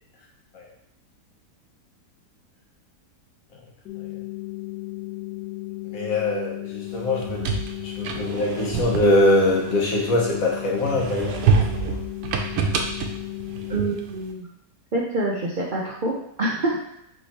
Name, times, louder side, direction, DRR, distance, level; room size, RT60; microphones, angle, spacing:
sound 1, 3.9-13.9, left 20 dB, 75° left, 1.3 m, -35 dB
voice 1, 5.9-7.5 7.8-11.5 11.8-12.0, left 1 dB, 60° left, -2 dB, 1.3 m, -23 dB
sound 2, 7.0-10.3 10.8-14.2, right 5 dB, 75° right, 1.1 m, -26 dB
voice 2, 13.7-14.5 14.9-16.8, right 2 dB, 60° right, -4 dB, 0.5 m, -26 dB
3.5 x 3.3 x 4.1 m, 0.80 s
omnidirectional pair, 1.8 m